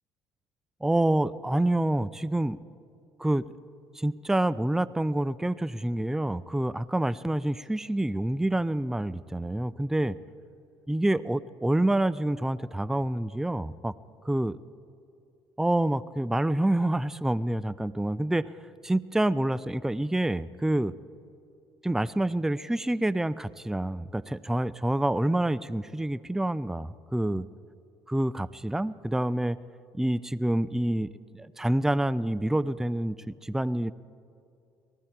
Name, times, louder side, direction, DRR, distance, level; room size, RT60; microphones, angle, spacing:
voice 1, 0.8-2.6 3.2-3.4 3.9-10.2 10.9-13.9 14.2-14.6 15.6-18.5 18.8-20.9 21.8-27.5 28.1-29.6 29.9-31.1 31.3-33.9, right 1 dB, 5° right, 18 dB, 0.4 m, -27 dB
18.5 x 15.0 x 4.4 m, 2.6 s
supercardioid pair, 70°, 10 cm